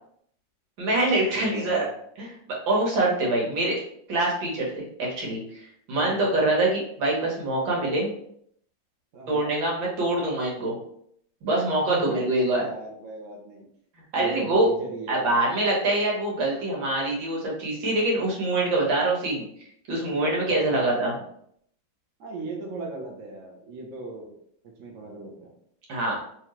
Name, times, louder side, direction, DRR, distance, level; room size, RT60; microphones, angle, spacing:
voice 1, 0.8-1.9 2.2-3.8 4.1-8.1 9.3-10.8 11.4-12.6 14.1-14.7 15.1-19.5 19.9-21.2 25.9-26.2, right 2 dB, 80° right, -2 dB, 1.9 m, -25 dB
voice 2, 1.3-1.9 5.9-6.3 9.1-9.5 11.9-13.6 14.2-15.4 20.7-21.3 22.2-24.4 24.6-25.5, right 3 dB, 55° right, 0 dB, 1.0 m, -38 dB
3.5 x 3.2 x 3.0 m, 0.67 s
omnidirectional pair, 2.0 m